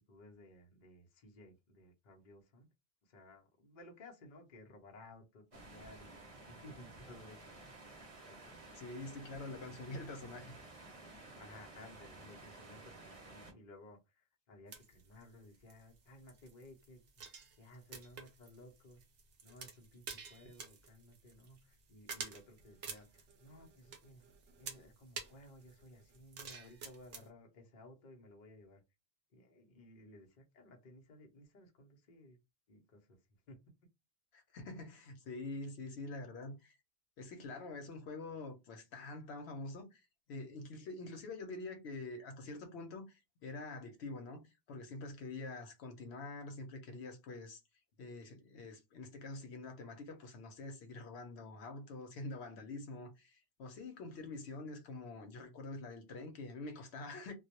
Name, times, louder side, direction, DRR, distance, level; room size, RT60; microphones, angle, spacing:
voice 1, 0.1-2.7 3.0-6.1 6.5-7.5 8.3-8.6 11.3-17.0 17.6-19.0 19.4-24.2 24.6-28.8 29.3-32.4 32.7-33.2 33.5-33.6, left 1 dB, 50° left, 0.7 m, -57 dB
sound 1, 5.5-13.5, right 2 dB, 35° right, 0.7 m, -54 dB
voice 2, 8.8-10.5 34.3-36.8 37.2-40.0 40.3-47.6 48.0-57.3, left 2 dB, 85° left, 0.9 m, -46 dB
sound 2, 14.7-27.3, right 5 dB, 70° right, 0.9 m, -50 dB
2.2 x 2.0 x 2.8 m
omnidirectional pair, 1.1 m